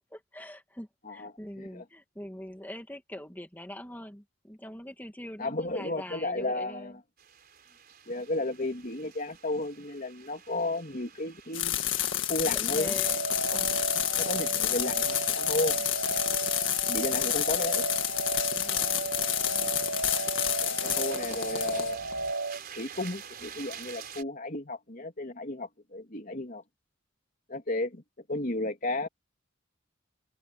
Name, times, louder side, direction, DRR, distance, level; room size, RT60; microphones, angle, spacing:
voice 1, 0.1-7.0 7.6-7.8 12.5-13.8 14.4-14.8 15.8-15.9 18.5-19.7, left 1 dB, 10° left, 2.0 m, -44 dB
voice 2, 5.4-6.9 8.1-11.8 12.2-12.9 13.5-13.7 14.2-15.8 16.9-17.8 20.6-22.0 22.8-26.6 27.5-28.0 28.3-29.1, left 2 dB, 45° left, 3.0 m, -33 dB
sound 1, 7.2-24.2, right 8 dB, 50° right, 4.2 m, -50 dB
sound 2, 11.5-22.3, left 12 dB, 70° left, 1.8 m, -29 dB
sound 3, 13.0-22.6, right 3 dB, 65° right, 1.1 m, -34 dB
head